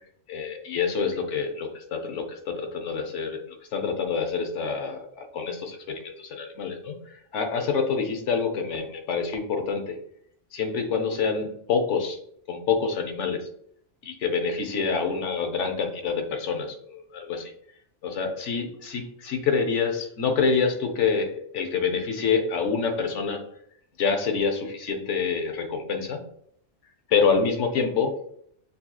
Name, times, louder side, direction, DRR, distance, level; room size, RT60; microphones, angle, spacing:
voice 1, 0.3-10.0 10.5-12.2 12.5-13.5 14.0-17.5 18.0-23.4 24.0-26.2 27.1-28.2, left 5 dB, 85° left, 6 dB, 1.1 m, -27 dB
6.6 x 2.8 x 2.2 m, 0.66 s
omnidirectional pair, 1.2 m